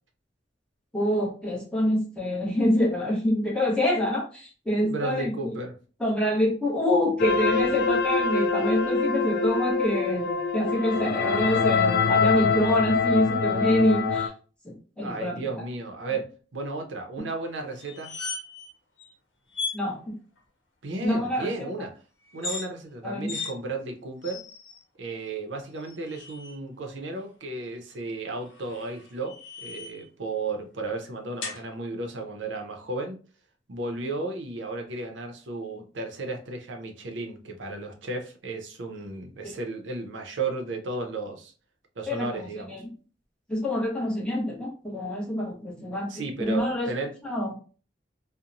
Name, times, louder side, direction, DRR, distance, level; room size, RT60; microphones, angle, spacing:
voice 1, 0.9-5.5 6.0-14.3 14.6-15.5 19.7-20.1 21.0-21.5 23.0-23.3 39.4-39.5 42.1-42.9 43.5-46.1 46.4-46.9 47.2-47.5, left 1 dB, 5° left, 0.9 m, -26 dB
voice 2, 4.8-5.7 15.0-18.1 20.8-21.9 22.3-24.4 25.0-33.2 33.7-41.5 42.0-42.8 46.1-47.2, right 3 dB, 85° right, 0.6 m, -34 dB
sound 1, 7.2-14.3, left 4 dB, 60° left, 0.3 m, -24 dB
sound 2, 17.8-18.7 19.0-19.1 19.5-19.8 22.3-22.7 23.3-23.5 24.2-24.8 25.8-26.6 28.5-30.1 31.4-31.6, left 4 dB, 85° left, 0.7 m, -36 dB
2.9 x 2.1 x 2.5 m
head